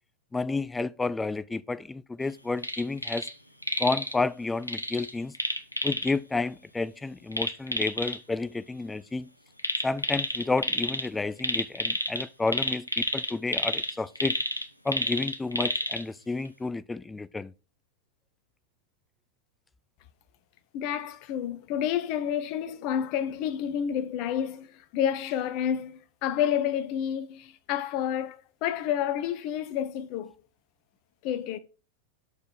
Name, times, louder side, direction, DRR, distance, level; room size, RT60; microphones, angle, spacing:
voice 1, 0.3-3.3 3.8-5.4 5.8-9.3 9.8-14.4 14.8-17.5, left 3 dB, 10° left, 0.4 m, -31 dB
sound 1, 2.6-3.3 3.6-4.1 4.7-6.1 7.3-8.2 9.6-11.1 11.4-16.0 16.5-16.6, left 1 dB, 85° left, 0.9 m, -30 dB
voice 2, 20.7-30.3 31.2-31.6, left 9 dB, 45° left, 0.9 m, -29 dB
6.6 x 5.0 x 5.9 m
figure-of-eight pair, 90°, 0 cm